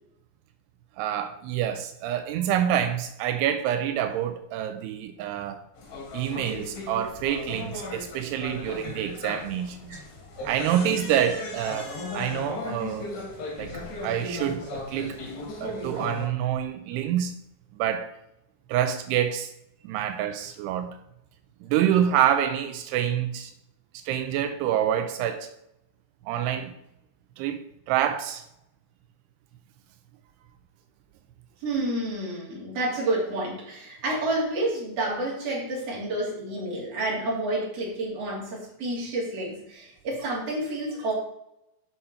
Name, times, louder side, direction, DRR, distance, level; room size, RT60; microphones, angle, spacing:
voice 1, 1.0-5.6 6.1-10.0 10.5-13.1 13.6-15.2 15.6-17.4 17.8-18.1 18.7-19.5 19.8-21.0 21.6-23.5 24.1-25.5 26.3-26.7 27.4-28.4, right 10 dB, 85° right, 2.7 m, -27 dB
sound 1, 5.8-16.3, left 2 dB, 60° left, 4.0 m, -37 dB
voice 2, 31.6-41.1, right 2 dB, 40° right, 3.6 m, -29 dB
7.8 x 5.7 x 5.7 m
omnidirectional pair, 4.7 m